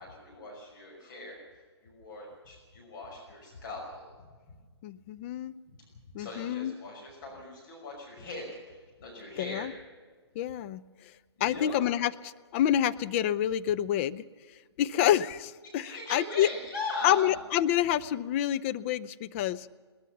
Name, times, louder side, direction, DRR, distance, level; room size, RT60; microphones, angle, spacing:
voice 1, 0.0-1.4 1.8-4.6 5.7-5.8 6.2-9.7 11.4-11.8 15.6-17.3, left 2 dB, 45° left, -1 dB, 5.8 m, -40 dB
voice 2, 4.8-5.5 6.1-6.7 9.4-9.7 10.4-10.8 11.4-14.2 14.8-16.5 17.0-19.7, left 11 dB, 30° left, 11 dB, 0.6 m, -28 dB
21.0 x 19.0 x 6.9 m, 1.5 s
figure-of-eight pair, 130°, 14 cm